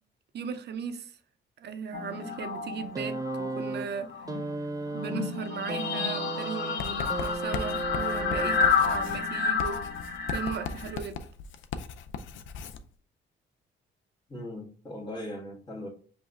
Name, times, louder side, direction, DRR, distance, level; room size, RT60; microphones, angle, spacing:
voice 1, 0.3-1.1 1.6-4.1 4.9-9.8 10.3-11.2, right 6 dB, 60° right, 0.7 m, -37 dB
sound 1, 1.9-3.7 4.0-10.9, left 6 dB, 60° left, 0.8 m, -30 dB
sound 2, 2.9-9.1 10.2-10.3, right 3 dB, 20° right, 0.4 m, -35 dB
Writing, 6.8-12.8, left 6 dB, 80° left, 0.5 m, -38 dB
voice 2, 14.3-15.9, left 1 dB, 15° left, 1.7 m, -39 dB
5.4 x 2.7 x 3.4 m
cardioid pair, 90°, 20 cm